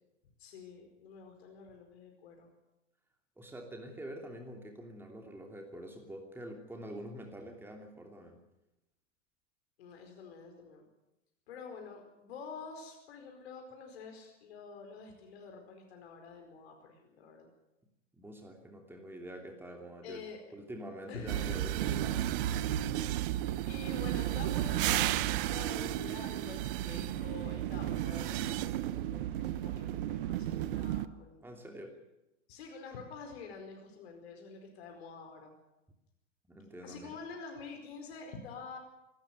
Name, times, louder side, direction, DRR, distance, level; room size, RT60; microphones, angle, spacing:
voice 1, 0.4-2.5 9.8-10.9 11.5-17.5 20.0-20.4 21.1-21.8 23.7-31.4 32.5-35.5 36.8-38.8, left 5 dB, 55° left, 3 dB, 4.7 m, -47 dB
voice 2, 3.4-8.4 18.1-20.2 20.5-22.4 31.4-32.0 36.5-37.1, right 1 dB, 5° right, 2 dB, 2.9 m, -46 dB
sound 1, 21.3-31.1, right 13 dB, 45° right, 1.0 m, -33 dB
27.0 x 13.5 x 9.3 m, 0.94 s
figure-of-eight pair, 90°, 37 cm